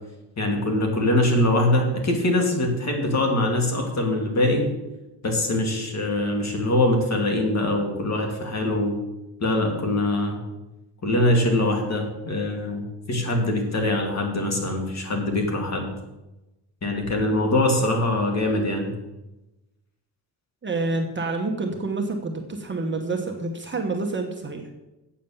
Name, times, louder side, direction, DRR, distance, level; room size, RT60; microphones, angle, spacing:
voice 1, 0.4-4.6 5.2-8.9 9.4-10.4 11.0-12.8 13.1-15.9 16.8-18.9, left 1 dB, 40° left, 2 dB, 2.5 m, -23 dB
voice 2, 20.6-24.6, right 3 dB, 25° right, 3 dB, 1.3 m, -28 dB
8.3 x 7.3 x 7.1 m, 1.0 s
cardioid pair, 135°, 41 cm